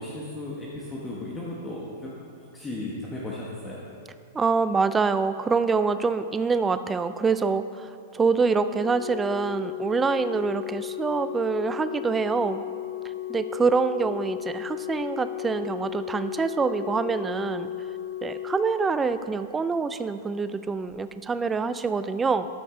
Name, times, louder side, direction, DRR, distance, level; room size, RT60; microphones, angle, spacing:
voice 1, 0.0-2.1 2.5-3.8, left 1 dB, 15° left, -5 dB, 1.1 m, -35 dB
voice 2, 4.3-12.6 13.3-17.7 18.2-22.5, right 4 dB, 15° right, 12 dB, 0.3 m, -25 dB
Organ, 8.7-19.6 20.7-20.9, left 12 dB, 70° left, 2.0 m, -35 dB
12.5 x 5.3 x 3.8 m, 2.3 s
hypercardioid pair, 135°, 0 cm